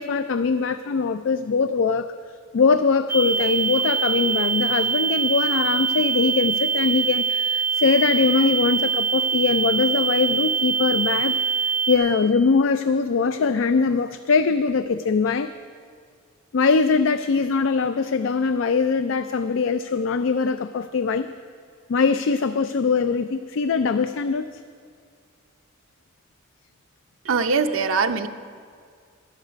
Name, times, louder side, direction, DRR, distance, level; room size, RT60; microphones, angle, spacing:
voice 1, 0.0-2.1 2.5-11.4 11.6-15.5 16.5-21.3 21.9-24.5, left 5 dB, 70° left, 11 dB, 0.4 m, -22 dB
sound 1, 3.1-12.0, right 6 dB, 45° right, 1.2 m, -23 dB
voice 2, 27.2-28.3, right 5 dB, 80° right, 6 dB, 0.6 m, -22 dB
14.5 x 11.5 x 5.1 m, 2.1 s
head